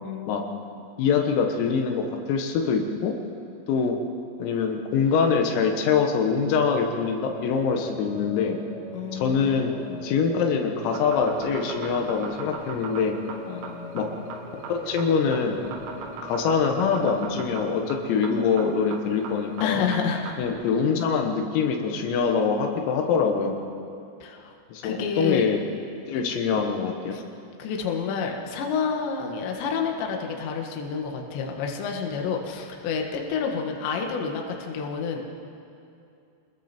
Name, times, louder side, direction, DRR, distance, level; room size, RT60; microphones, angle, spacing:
voice 1, 0.0-0.9 8.9-10.0 13.5-14.3 19.6-20.4 24.2-24.5 24.8-25.5 26.2-26.4 27.1-27.2 27.6-35.2, left 6 dB, 65° left, 2 dB, 3.7 m, -30 dB
voice 2, 1.0-3.1 3.7-4.0 4.4-8.6 9.1-9.7 10.0-13.2 13.9-14.1 14.7-15.6 16.2-19.8 20.4-23.6 24.7-25.6 26.1-27.2, left 6 dB, 85° left, 3 dB, 4.2 m, -24 dB
sound 1, 6.1-18.6, equal, 55° right, 1.5 m, -42 dB
sound 2, 10.8-20.5, right 6 dB, 75° right, 4.3 m, -39 dB
29.5 x 21.0 x 4.5 m, 2.6 s
omnidirectional pair, 5.9 m